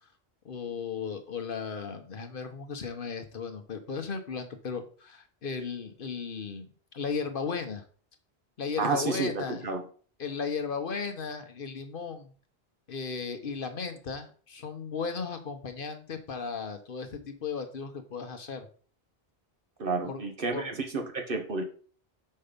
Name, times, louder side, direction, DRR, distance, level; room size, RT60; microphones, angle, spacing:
voice 1, 0.4-7.8 8.6-9.7 10.2-12.3 12.9-18.7 20.0-20.2 20.5-20.7, left 5 dB, 60° left, 7 dB, 1.0 m, -35 dB
voice 2, 8.8-9.9 19.8-21.6, right 4 dB, 55° right, 4 dB, 1.4 m, -31 dB
5.5 x 5.4 x 5.2 m, 0.43 s
omnidirectional pair, 1.1 m